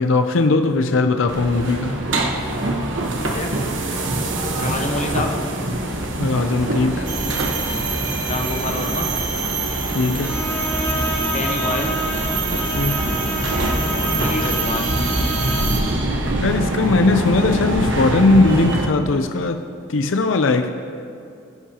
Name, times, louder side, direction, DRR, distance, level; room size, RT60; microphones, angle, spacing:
voice 1, 0.0-2.0 6.2-7.1 9.9-10.4 12.8-13.1 16.4-19.6 19.9-20.7, left 3 dB, 80° left, 7 dB, 0.6 m, -19 dB
sound 1, 1.3-18.9, right 1 dB, 75° right, 1.2 m, -24 dB
voice 2, 3.1-3.6 4.6-5.4 8.2-9.1 11.2-12.0 13.9-15.2, left 2 dB, 35° left, 3 dB, 1.1 m, -27 dB
sound 2, 7.1-15.8, right 5 dB, 45° right, 1.5 m, -28 dB
Bowed string instrument, 10.2-15.9, equal, 10° left, 1.4 m, -29 dB
21.0 x 10.5 x 2.9 m, 2.5 s
head